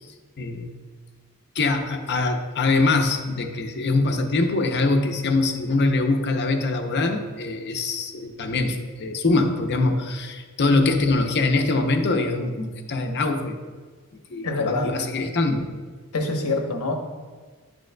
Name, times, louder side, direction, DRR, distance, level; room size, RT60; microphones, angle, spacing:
voice 1, 0.4-0.7 1.5-13.6 14.3-15.7, left 3 dB, 50° left, 4 dB, 0.6 m, -23 dB
voice 2, 14.4-14.9 16.1-16.9, left 3 dB, 80° left, 2 dB, 1.0 m, -25 dB
10.5 x 6.3 x 2.2 m, 1.5 s
head